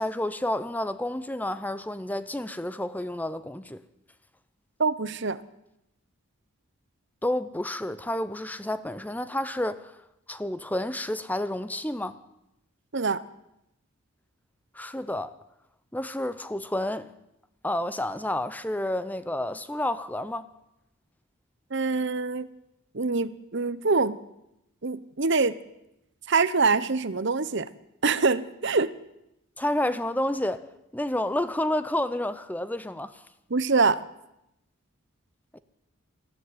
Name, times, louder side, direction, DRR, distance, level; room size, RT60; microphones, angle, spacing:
voice 1, 0.0-3.8 7.2-10.0 10.3-12.2 14.7-15.3 15.9-17.1 17.6-20.5 29.6-30.7 30.9-33.2 35.5-35.6, left 1 dB, 5° left, 0.7 m, -30 dB
voice 2, 4.8-5.4 12.9-13.2 21.7-22.5 22.9-24.2 24.8-25.5 26.3-27.7 28.0-28.9 33.5-34.0, right 4 dB, 55° right, 0.9 m, -24 dB
20.0 x 14.5 x 9.4 m
head